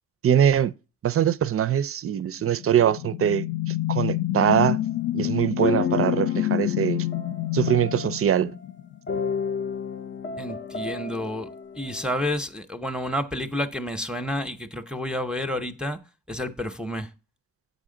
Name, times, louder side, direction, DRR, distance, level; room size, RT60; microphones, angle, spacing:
voice 1, 0.2-0.7 1.0-3.4 3.9-4.8 5.1-7.1 7.5-8.6, right 9 dB, 40° right, 0.5 m, -22 dB
sound 1, 2.5-9.0, left 15 dB, 75° left, 0.5 m, -28 dB
sound 2, 4.5-4.9 5.6-8.4 9.1-12.3, left 5 dB, 35° left, 0.6 m, -31 dB
voice 2, 10.4-11.5 11.7-16.0 16.3-17.1, left 1 dB, ahead, 0.7 m, -30 dB
8.1 x 4.9 x 3.8 m
supercardioid pair, 55°, 35 cm